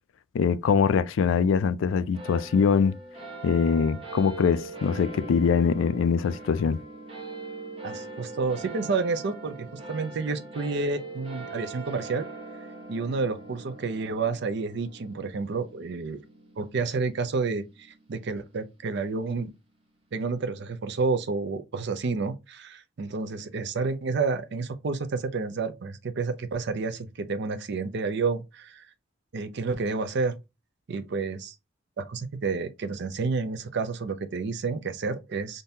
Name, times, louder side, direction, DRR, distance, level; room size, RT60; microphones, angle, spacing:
voice 1, 0.3-3.0 3.4-6.8, left 6 dB, 75° left, 0.3 m, -23 dB
sound 1, 2.1-18.9, right 3 dB, 25° right, 1.1 m, -42 dB
voice 2, 7.8-12.2 12.9-16.2 16.6-19.5 20.1-28.9 29.3-30.3 30.9-31.5 32.0-35.6, right 4 dB, 55° right, 0.4 m, -30 dB
3.7 x 2.6 x 2.7 m
head